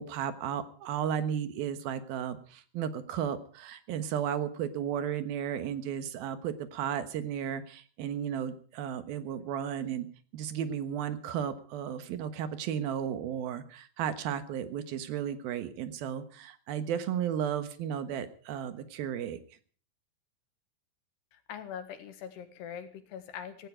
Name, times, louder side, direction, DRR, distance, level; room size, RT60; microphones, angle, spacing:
voice 1, 0.0-10.1 10.3-19.4, right 9 dB, 70° right, 11 dB, 3.0 m, -34 dB
voice 2, 21.3-23.7, left 8 dB, 80° left, 8 dB, 3.7 m, -42 dB
18.0 x 15.5 x 5.0 m, 0.43 s
omnidirectional pair, 4.7 m